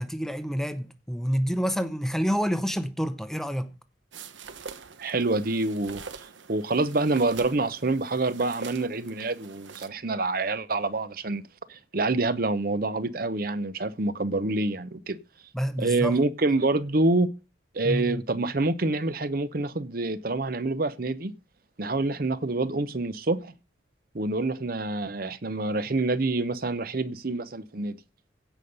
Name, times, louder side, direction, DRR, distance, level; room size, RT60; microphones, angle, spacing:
voice 1, 0.0-3.7 15.5-16.2 17.8-18.2, equal, ahead, 0.7 m, -28 dB
sound 1, 4.1-9.9, right 5 dB, 75° right, 1.1 m, -44 dB
voice 2, 5.0-6.0 6.5-11.4 11.7-15.2 15.8-17.3 17.7-21.3 21.8-23.5 24.1-28.0, right 2 dB, 50° right, 0.7 m, -27 dB
16.0 x 5.5 x 6.6 m
head